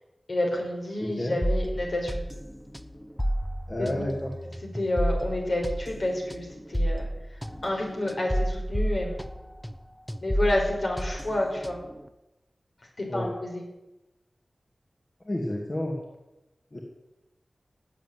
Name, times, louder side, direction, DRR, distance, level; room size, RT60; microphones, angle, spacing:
voice 1, 0.3-2.1 3.8-4.0 4.7-7.0 7.3-9.2 10.2-11.8 13.0-13.6, left 1 dB, 65° left, 0 dB, 5.5 m, -29 dB
sound 1, 1.4-9.8 10.1-12.0, equal, 5° left, 0.9 m, -31 dB
voice 2, 3.7-4.3 13.1-13.3 15.3-16.0 16.7-16.8, left 1 dB, 35° left, -1 dB, 2.6 m, -30 dB
17.5 x 8.1 x 9.5 m, 0.98 s
wide cardioid pair, 80°, 0 cm